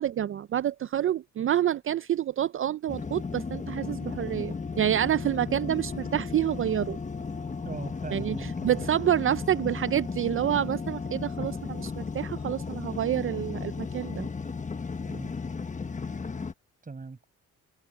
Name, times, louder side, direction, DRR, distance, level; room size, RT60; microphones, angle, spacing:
voice 1, 0.0-7.0 8.1-8.3 8.6-14.3, right 11 dB, 45° right, 0.5 m, -28 dB
sound 1, 2.9-16.5, left 5 dB, 25° left, 1.2 m, -35 dB
voice 2, 7.6-8.9 15.1-15.3 16.8-17.3, right 4 dB, 25° right, 7.4 m, -40 dB
cardioid pair, 90°, 30 cm